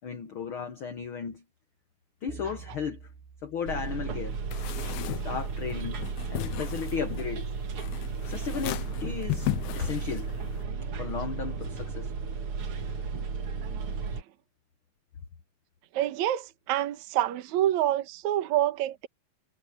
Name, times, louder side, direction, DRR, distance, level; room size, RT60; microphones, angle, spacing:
voice 1, 0.0-1.4 2.2-3.1 3.4-4.4 5.2-7.6 8.3-9.5 9.7-10.3 11.0-12.1, left 6 dB, 75° left, 1.2 m, -35 dB
sound 1, 2.3-4.8, right 6 dB, 85° right, 3.3 m, -48 dB
Bus, 3.6-14.2, right 5 dB, 45° right, 2.3 m, -34 dB
sound 2, 4.5-10.6, left 17 dB, 90° left, 2.7 m, -36 dB
voice 2, 15.9-19.1, right 13 dB, 65° right, 2.3 m, -27 dB
omnidirectional pair, 4.1 m